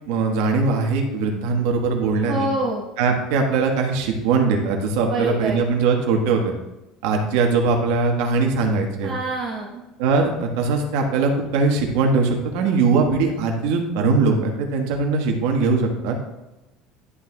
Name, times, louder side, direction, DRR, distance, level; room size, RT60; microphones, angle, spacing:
voice 1, 0.1-2.5 3.0-6.5 7.0-9.1 10.0-16.2, right 4 dB, 70° right, 2 dB, 1.3 m, -21 dB
voice 2, 2.3-2.8 5.0-5.6 9.0-9.8, right 2 dB, 20° right, -8 dB, 1.6 m, -26 dB
11.0 x 6.1 x 2.3 m, 0.99 s
cardioid pair, 180°, 0 cm